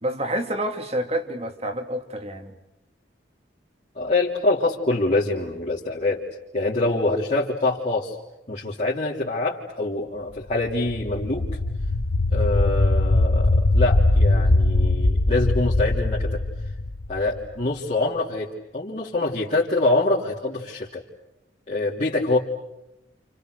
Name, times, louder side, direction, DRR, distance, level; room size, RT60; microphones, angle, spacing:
voice 1, 0.0-2.5, right 1 dB, 35° right, 5 dB, 2.7 m, -28 dB
voice 2, 4.0-6.2 6.5-8.2 8.5-11.5 12.3-16.4 17.1-21.0 21.7-22.4, left 2 dB, 40° left, -7 dB, 3.5 m, -25 dB
sound 1, 10.7-17.5, left 2 dB, 80° left, 1.0 m, -21 dB
30.0 x 29.5 x 6.7 m, 0.93 s
head